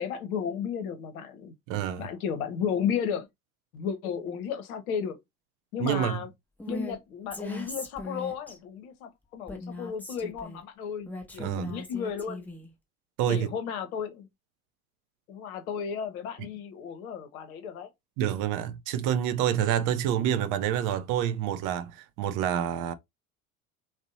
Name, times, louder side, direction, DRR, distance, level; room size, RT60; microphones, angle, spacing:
voice 1, 0.0-1.5 2.0-3.3 3.7-5.2 5.7-6.3 6.7-12.5 13.3-14.3 15.3-17.9, left 7 dB, 75° left, 0.7 m, -33 dB
voice 2, 1.7-2.1 5.8-6.3 11.4-11.8 13.2-13.5 16.4-16.5 18.2-22.9, right 10 dB, 50° right, 0.4 m, -28 dB
Female speech woman speaking, 6.6-7.0 7.3-8.6 9.5-10.6 11.1-12.7, left 1 dB, 5° left, 0.5 m, -39 dB
2.6 x 2.0 x 2.6 m
hypercardioid pair, 70°, 43 cm